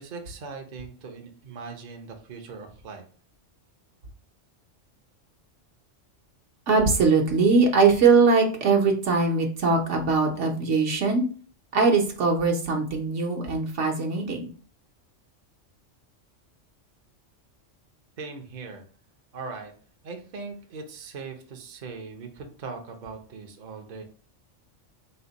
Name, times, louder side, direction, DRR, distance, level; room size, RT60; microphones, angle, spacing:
voice 1, 0.0-3.0 18.2-18.8 19.3-19.7 20.0-24.0, right 4 dB, 45° right, 3 dB, 0.7 m, -40 dB
voice 2, 6.7-11.2 11.7-14.5, right 4 dB, 70° right, 1 dB, 1.1 m, -21 dB
4.2 x 2.2 x 3.9 m, 0.41 s
omnidirectional pair, 1.3 m